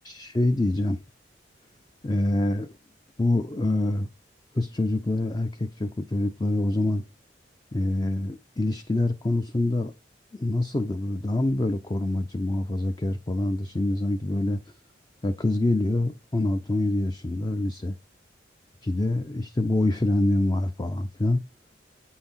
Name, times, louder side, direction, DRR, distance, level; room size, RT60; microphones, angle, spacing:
voice 1, 0.0-1.0 2.0-2.7 3.2-4.1 4.5-7.0 7.7-9.9 10.3-14.6 15.2-17.9 18.8-21.4, left 2 dB, 20° left, 0.5 m, -25 dB
8.8 x 5.7 x 4.2 m
head